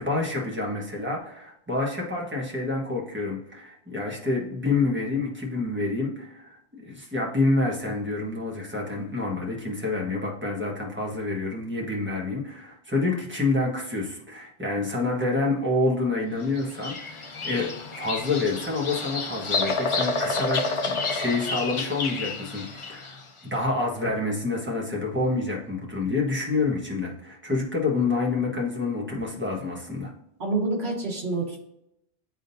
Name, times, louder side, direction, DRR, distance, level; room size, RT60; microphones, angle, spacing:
voice 1, 0.0-30.1, left 3 dB, 10° right, -2 dB, 1.4 m, -28 dB
Bird vocalization bird call bird song, 16.6-23.2, left 3 dB, 40° left, 0.5 m, -29 dB
voice 2, 30.4-31.6, right 3 dB, 80° right, -2 dB, 1.8 m, -27 dB
10.5 x 3.8 x 2.7 m, 0.80 s
omnidirectional pair, 1.0 m